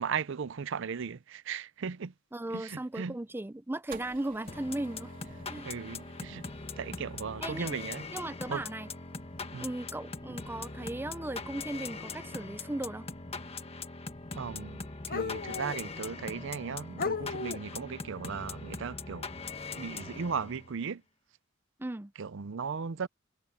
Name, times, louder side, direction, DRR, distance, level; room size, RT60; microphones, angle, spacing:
voice 1, 0.0-2.1 2.5-3.2 5.6-6.5 6.8-8.1 8.5-8.6 9.5-9.7 14.4-19.3 19.7-21.0 22.2-23.1, right 6 dB, 65° right, 0.5 m, -37 dB
voice 2, 2.3-5.1 5.5-5.7 7.4-7.7 8.1-8.9 9.6-13.1 21.8-22.1, right 1 dB, 10° right, 0.5 m, -37 dB
sound 1, 3.9-10.2, right 4 dB, 45° right, 3.2 m, -53 dB
sound 2, 4.5-20.8, left 4 dB, 30° left, 1.5 m, -41 dB
sound 3, 9.5-9.6 10.7-10.9 13.4-13.5 15.1-15.9 16.5-16.6 17.0-17.8, left 5 dB, 45° left, 0.7 m, -35 dB
head